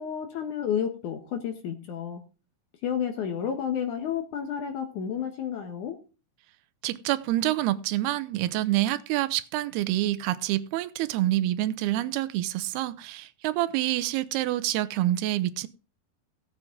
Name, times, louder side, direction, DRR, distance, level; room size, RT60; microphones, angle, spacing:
voice 1, 0.0-2.2 2.8-6.0, left 8 dB, 65° left, 2.2 m, -31 dB
voice 2, 6.8-15.7, right 15 dB, 85° right, 2.6 m, -27 dB
16.5 x 7.7 x 3.7 m
omnidirectional pair, 4.5 m